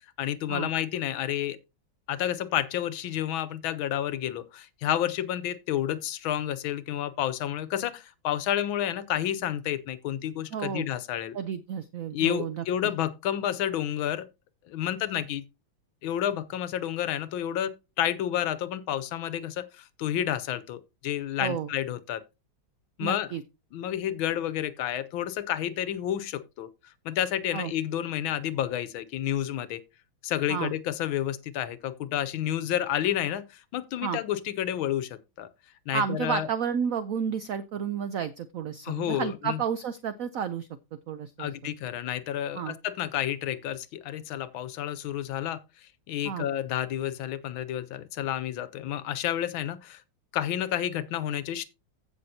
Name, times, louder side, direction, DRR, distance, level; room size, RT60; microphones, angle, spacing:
voice 1, 0.2-1.6 2.1-11.4 12.1-14.3 14.7-15.4 16.0-22.2 23.0-23.3 23.7-26.7 27.0-29.8 30.2-35.5 35.9-36.5 38.8-39.6 41.4-45.6 46.1-50.0 50.3-51.6, left 11 dB, 80° left, 1.5 m, -30 dB
voice 2, 10.5-10.9 11.3-12.6 21.4-21.7 23.0-23.4 27.5-27.7 30.5-30.7 34.0-34.2 35.9-40.7 41.1-41.5 42.5-42.8 46.2-46.5, right 7 dB, 90° right, 0.7 m, -31 dB
15.5 x 6.1 x 2.7 m
omnidirectional pair, 2.2 m